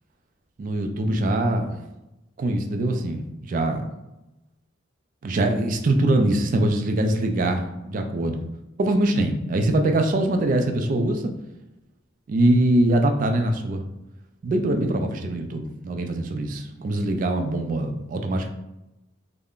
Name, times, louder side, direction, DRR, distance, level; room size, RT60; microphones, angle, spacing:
voice 1, 0.6-1.8 2.4-3.8 5.2-8.5 8.8-11.3 12.3-13.8 14.4-18.5, right 1 dB, 40° right, 5 dB, 0.3 m, -23 dB
2.3 x 2.1 x 3.6 m, 0.95 s
head